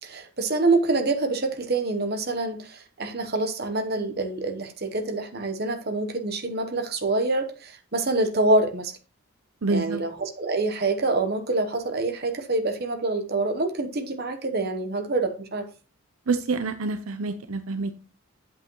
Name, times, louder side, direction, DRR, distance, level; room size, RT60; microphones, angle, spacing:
voice 1, 0.0-8.9 9.7-15.7, right 2 dB, 45° right, 1.0 m, -26 dB
voice 2, 9.6-10.0 16.3-17.9, right 3 dB, 75° right, 0.6 m, -27 dB
8.4 x 8.0 x 3.0 m
head